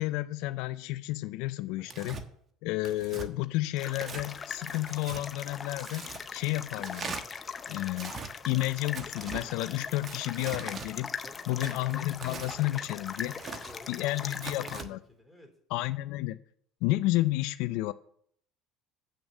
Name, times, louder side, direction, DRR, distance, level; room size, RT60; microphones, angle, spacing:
voice 1, 0.0-2.2 2.6-7.2 7.7-8.1 8.4-11.1 11.5-13.3 13.9-15.0 15.7-16.4 16.8-17.9, left 18 dB, 75° left, 0.3 m, -31 dB
Tearing, 1.9-2.2 2.8-3.3 3.9-4.3 4.7-5.2 5.8-6.2 6.8-7.2 7.9-8.3 8.9-9.5 10.0-10.9 11.6-12.6 13.2-13.7 14.3-14.9, right 5 dB, 40° right, 1.2 m, -41 dB
sound 1, 3.8-14.8, left 5 dB, 30° left, 0.8 m, -41 dB
voice 2, 11.2-11.8 12.6-12.8 13.7-15.6, equal, ahead, 3.6 m, -51 dB
8.0 x 6.1 x 7.1 m
supercardioid pair, 85°, 0 cm